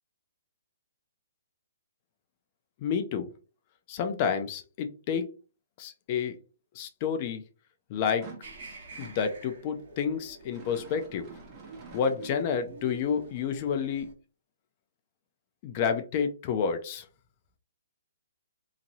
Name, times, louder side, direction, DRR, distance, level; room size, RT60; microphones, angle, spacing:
voice 1, 2.8-3.3 3.9-5.3 5.8-6.4 6.8-7.4 7.9-8.3 9.0-11.3 11.9-14.1 15.6-17.1, left 7 dB, 35° left, 7 dB, 0.4 m, -29 dB
sound 1, 8.0-9.3 10.4-12.7, right 4 dB, 25° right, 0.8 m, -49 dB
sound 2, 8.4-14.1, right 4 dB, 55° right, 1.1 m, -48 dB
2.9 x 2.7 x 2.6 m, 0.34 s
hypercardioid pair, 155°, 0 cm